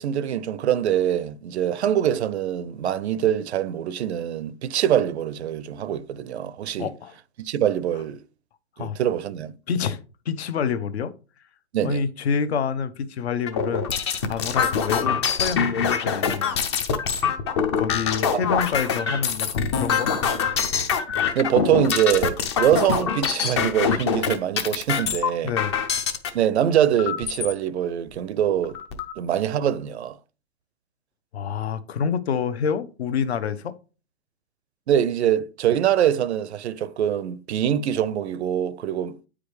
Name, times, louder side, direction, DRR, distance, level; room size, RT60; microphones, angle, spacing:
voice 1, 0.0-6.9 7.4-8.2 8.8-9.5 11.7-12.0 14.5-14.6 18.3-18.4 21.3-25.5 26.3-28.8 29.2-30.2 34.9-39.2, right 10 dB, 65° right, 0.6 m, -24 dB
voice 2, 6.8-7.2 8.8-9.0 9.7-11.1 11.8-16.5 17.7-20.1 25.4-25.8 31.3-33.7, left 6 dB, 60° left, 0.8 m, -27 dB
sound 1, 13.5-26.3 27.0-27.5 28.1-28.2 28.5-29.1, left 6 dB, 25° left, 0.5 m, -24 dB
8.9 x 4.9 x 3.3 m
hypercardioid pair, 155°, 35 cm